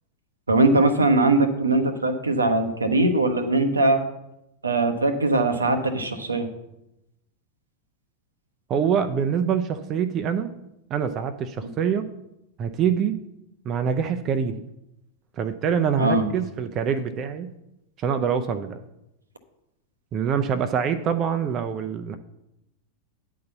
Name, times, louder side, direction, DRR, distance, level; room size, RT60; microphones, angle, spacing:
voice 1, 0.5-4.0 4.6-6.5 16.0-16.3, right 2 dB, 75° right, 7 dB, 0.8 m, -21 dB
voice 2, 8.7-10.5 10.9-12.0 12.6-13.2 13.7-14.5 15.4-17.5 18.0-18.8 20.1-22.2, right 7 dB, 30° right, 8 dB, 0.5 m, -25 dB
9.4 x 4.0 x 7.0 m, 0.87 s
figure-of-eight pair, 90°, 0 cm